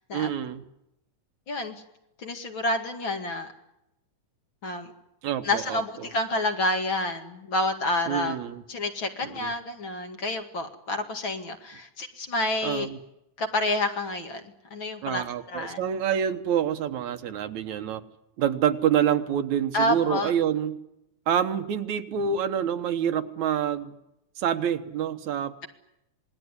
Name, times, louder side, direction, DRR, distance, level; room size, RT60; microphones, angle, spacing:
voice 1, 0.1-0.6 5.2-6.1 8.1-8.6 9.2-9.5 12.6-13.0 15.0-18.0 18.4-20.8 21.3-23.9 24.4-25.5, right 9 dB, 70° right, 9 dB, 2.5 m, -27 dB
voice 2, 1.5-1.8 2.2-3.5 4.6-4.9 5.4-8.4 8.7-12.9 13.4-15.2 15.5-15.8 19.7-20.3, left 2 dB, 45° left, 5 dB, 2.6 m, -29 dB
27.0 x 20.0 x 9.9 m, 0.87 s
omnidirectional pair, 3.5 m